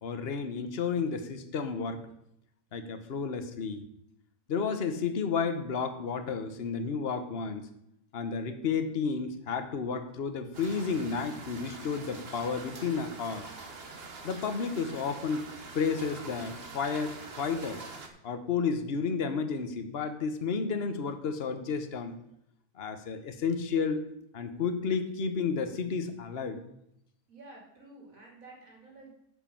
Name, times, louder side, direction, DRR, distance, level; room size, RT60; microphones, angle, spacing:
voice 1, 0.0-2.0 2.7-3.8 4.5-7.7 8.1-13.4 14.2-15.5 15.7-17.8 18.2-22.2 22.8-24.0 24.3-26.6, left 5 dB, 45° left, 8 dB, 1.1 m, -32 dB
sound 1, 10.5-18.1, right 3 dB, 45° right, 1.3 m, -45 dB
voice 2, 27.3-29.1, right 2 dB, 70° right, -1 dB, 3.3 m, -51 dB
9.7 x 5.7 x 7.0 m, 0.77 s
omnidirectional pair, 1.5 m